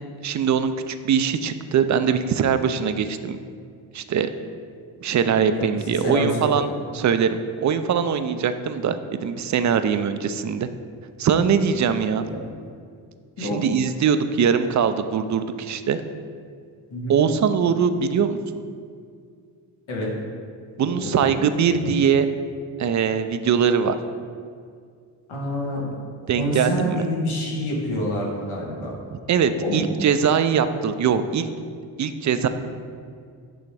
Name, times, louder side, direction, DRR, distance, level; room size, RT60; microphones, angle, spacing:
voice 1, 0.2-3.4 3.9-4.3 5.0-6.7 6.9-10.7 11.2-12.3 13.4-16.0 17.1-18.4 20.8-22.3 22.8-24.0 26.3-27.0 29.1-31.5 32.0-32.5, right 7 dB, 40° right, 10 dB, 0.4 m, -22 dB
voice 2, 5.5-6.6 12.2-12.4 13.4-13.6 16.9-17.2 19.9-20.1 20.8-21.9 25.3-25.9 26.3-29.0 29.6-29.8, equal, 80° left, -2 dB, 1.5 m, -28 dB
8.3 x 3.4 x 3.3 m, 2.2 s
cardioid pair, 60°, 47 cm